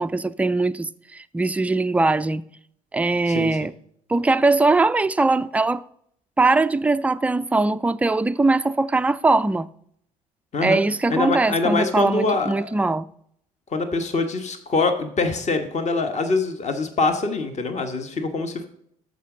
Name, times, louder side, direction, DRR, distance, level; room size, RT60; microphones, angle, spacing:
voice 1, 0.0-2.4 2.9-3.7 4.1-5.8 6.4-9.7 10.6-13.1, right 3 dB, 5° right, 0.3 m, -21 dB
voice 2, 3.2-3.6 10.5-10.8 11.1-12.7 13.7-18.7, left 3 dB, 35° left, 1.3 m, -24 dB
13.5 x 5.2 x 3.8 m
hypercardioid pair, 55°, 19 cm